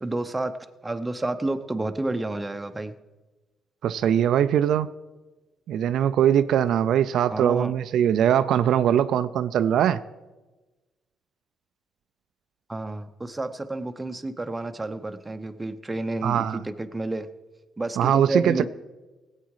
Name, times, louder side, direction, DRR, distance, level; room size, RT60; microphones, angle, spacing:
voice 1, 0.0-2.9 7.3-7.7 12.7-17.3 17.8-18.6, right 2 dB, 15° right, 8 dB, 0.8 m, -30 dB
voice 2, 3.8-4.9 5.7-10.0 16.2-16.6 18.0-18.6, right 10 dB, 75° right, 11 dB, 0.4 m, -21 dB
17.5 x 8.3 x 4.8 m, 1.2 s
cardioid pair, 90°, 0 cm